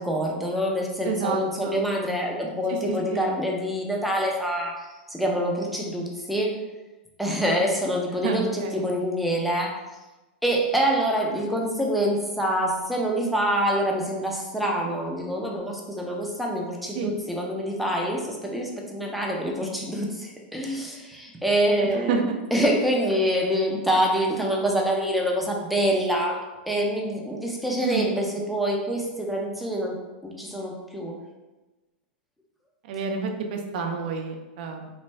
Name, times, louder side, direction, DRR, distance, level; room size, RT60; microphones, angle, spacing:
voice 1, 0.0-6.6 7.2-9.7 10.4-22.2 22.5-26.4 26.7-30.0 30.2-31.2, equal, ahead, -1 dB, 0.5 m, -26 dB
voice 2, 1.0-1.8 2.7-3.3 8.1-8.9 16.9-17.1 21.9-22.4 27.8-28.0 32.8-34.9, right 5 dB, 55° right, 3 dB, 0.5 m, -29 dB
3.1 x 2.5 x 3.2 m, 1.1 s
hypercardioid pair, 135°, 6 cm